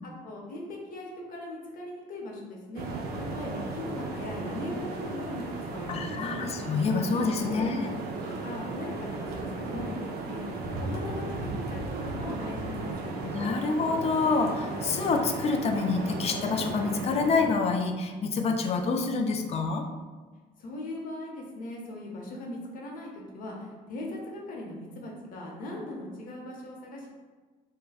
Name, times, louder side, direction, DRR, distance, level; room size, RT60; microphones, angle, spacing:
voice 1, 0.0-2.9 3.2-5.4 5.7-6.4 7.4-7.7 8.2-10.4 10.8-13.2 20.6-27.1, left 1 dB, 55° left, -1 dB, 0.7 m, -39 dB
sound 1, 2.8-17.6, right 2 dB, 70° right, 0.5 m, -35 dB
voice 2, 5.9-7.9 13.3-19.9, left 4 dB, 40° left, 4 dB, 0.3 m, -27 dB
3.3 x 2.1 x 2.3 m, 1.3 s
cardioid pair, 110°, 17 cm